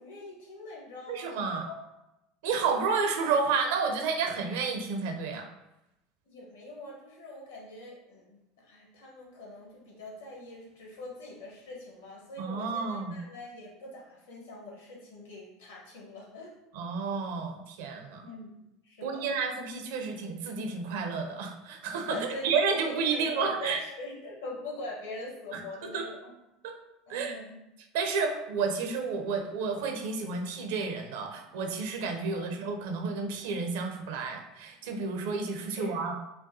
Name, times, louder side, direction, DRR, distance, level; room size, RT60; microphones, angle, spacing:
voice 1, 0.0-1.8 2.4-2.6 2.8-2.9 6.3-8.4 8.7-16.5 18.2-18.6 18.8-19.3 22.1-26.3 27.1-27.6 32.3-32.5 35.7-36.0, left 1 dB, 75° left, -3 dB, 1.4 m, -43 dB
voice 2, 1.1-1.7 2.4-5.5 12.4-13.2 16.7-18.2 19.0-23.8 25.5-25.6 25.9-26.1 26.6-26.8 27.1-27.4 27.9-36.1, right 5 dB, 60° right, 4 dB, 0.6 m, -31 dB
5.5 x 2.3 x 2.7 m, 0.91 s
figure-of-eight pair, 70°, 0 cm